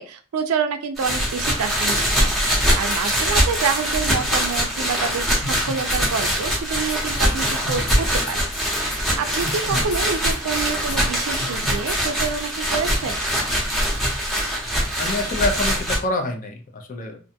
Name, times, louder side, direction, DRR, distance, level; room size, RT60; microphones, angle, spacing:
voice 1, 0.0-13.2, right 6 dB, 80° right, 8 dB, 0.4 m, -28 dB
sound 1, 1.0-16.0, equal, ahead, 0.7 m, -23 dB
sound 2, 5.4-6.0 6.3-8.0 8.3-8.6 8.9-9.0 9.3-10.0 10.3-10.6 10.9-11.0 11.4-12.0 12.2-12.3 12.9-13.0, left 2 dB, 70° left, 0.8 m, -33 dB
voice 2, 15.0-17.2, left 2 dB, 40° left, 4 dB, 0.5 m, -26 dB
2.5 x 2.2 x 2.7 m, 0.37 s
head